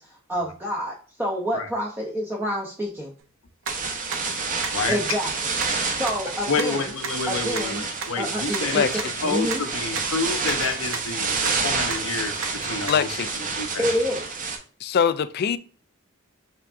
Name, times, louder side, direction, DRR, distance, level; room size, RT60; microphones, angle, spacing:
voice 1, 0.0-3.1 4.9-5.5 5.9-6.9 7.3-7.8 8.2-9.6 13.8-14.4, equal, 10° right, 0.7 m, -28 dB
sound 1, 3.2-3.3 3.7-3.8 4.1-4.2 4.6-4.7 5.1-5.2 5.6-5.7 6.1-6.2 6.6-6.7 7.0-7.1 7.6-7.7 8.0-8.1 8.5-8.6 9.0-9.1 9.5-9.6 10.0-10.1 10.5-10.6 10.9-11.1 11.5-11.6 11.9-12.0 12.4-12.5 12.9-13.0, right 5 dB, 65° right, 0.8 m, -30 dB
sound 2, 3.7-14.6, right 4 dB, 40° right, 0.9 m, -29 dB
voice 2, 6.5-13.1 13.5-13.9, left 4 dB, 70° left, 0.8 m, -29 dB
voice 3, 12.9-13.3 14.8-15.6, left 7 dB, 50° left, 0.4 m, -22 dB
5.7 x 3.5 x 2.5 m
head